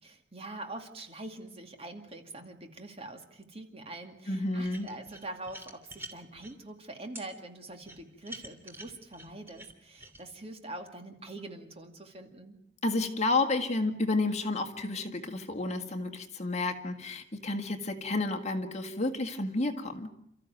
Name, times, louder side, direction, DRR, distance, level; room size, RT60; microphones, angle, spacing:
voice 1, 0.0-12.6, right 2 dB, 30° right, 5 dB, 2.4 m, -44 dB
voice 2, 4.3-4.9 12.8-20.1, left 2 dB, 35° left, 6 dB, 1.9 m, -31 dB
sound 1, 4.6-6.5 7.1-7.3 7.8-10.2, right 1 dB, 10° right, 2.9 m, -46 dB
29.0 x 14.0 x 9.2 m, 0.79 s
head